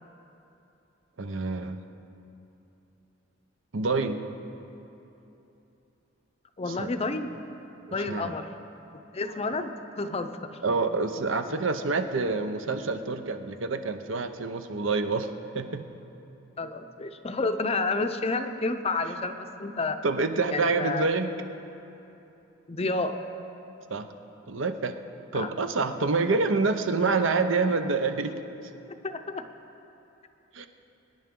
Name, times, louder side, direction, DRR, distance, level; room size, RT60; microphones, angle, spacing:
voice 1, 1.2-1.8 3.7-4.2 6.8-6.9 7.9-8.3 10.6-15.8 20.0-21.3 23.9-24.1 24.5-24.9 25.3-28.3 30.5-30.7, right 3 dB, 65° right, 8 dB, 0.7 m, -27 dB
voice 2, 6.6-7.3 7.9-8.5 9.1-10.6 16.6-20.0 20.5-21.0 22.7-23.2 25.3-25.5 29.0-29.5, left 3 dB, 30° left, 8 dB, 0.6 m, -30 dB
23.5 x 10.5 x 3.8 m, 2.9 s
head